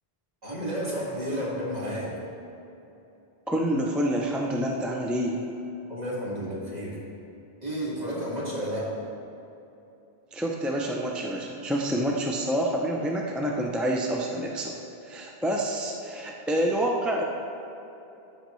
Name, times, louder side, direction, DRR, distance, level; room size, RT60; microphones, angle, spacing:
voice 1, 0.4-2.1 5.9-7.0 7.6-8.9, equal, 40° right, -7 dB, 2.1 m, -31 dB
voice 2, 3.5-5.4 10.3-14.7 15.0-17.2, right 1 dB, ahead, -1 dB, 0.4 m, -27 dB
13.5 x 5.7 x 3.1 m, 2.9 s
omnidirectional pair, 1.0 m